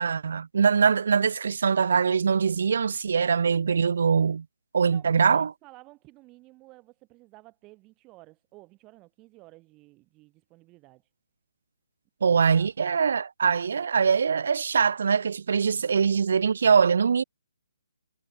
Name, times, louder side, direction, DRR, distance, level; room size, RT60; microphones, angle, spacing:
voice 1, 0.0-4.4 4.7-5.5 12.2-17.2, right 6 dB, 65° right, 0.6 m, -23 dB
voice 2, 4.8-11.1 12.4-12.7, right 21 dB, 20° right, 5.1 m, -53 dB
figure-of-eight pair, 145°, 0 cm